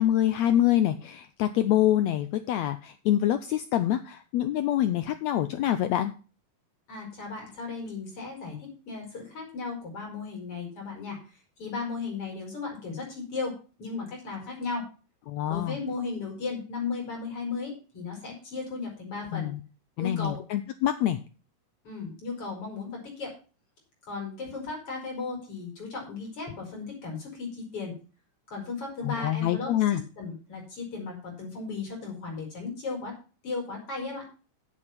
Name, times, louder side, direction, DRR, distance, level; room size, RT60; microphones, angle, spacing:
voice 1, 0.0-6.1 15.3-15.8 19.3-19.6 20.0-21.2 29.0-30.0, left 12 dB, 80° left, 10 dB, 1.6 m, -25 dB
voice 2, 6.9-11.2 11.6-14.9 15.5-19.5 20.0-20.4 21.8-23.3 24.1-27.9 28.5-29.7 30.2-33.1 33.4-34.3, left 4 dB, 40° left, 0 dB, 5.8 m, -35 dB
8.7 x 8.6 x 5.8 m, 0.35 s
omnidirectional pair, 3.8 m